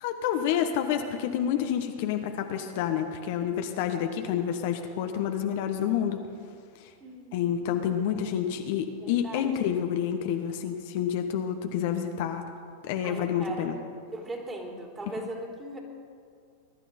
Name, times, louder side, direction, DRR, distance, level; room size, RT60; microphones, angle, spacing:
voice 1, 0.0-6.2 7.3-12.4 12.8-13.7, left 9 dB, 55° left, 6 dB, 1.1 m, -28 dB
voice 2, 7.0-7.4 9.0-9.8 13.0-13.8 14.1-15.8, right 2 dB, 20° right, 0 dB, 3.1 m, -39 dB
21.0 x 11.5 x 4.4 m, 2.2 s
figure-of-eight pair, 95°, 0 cm